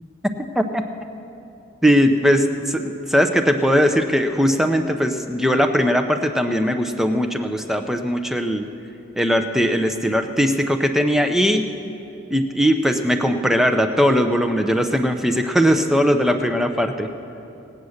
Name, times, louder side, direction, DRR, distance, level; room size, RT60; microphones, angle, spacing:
voice 1, 1.8-8.7 9.2-11.6 12.3-17.1, equal, ahead, 6 dB, 0.5 m, -19 dB
18.5 x 8.3 x 6.4 m, 2.7 s
head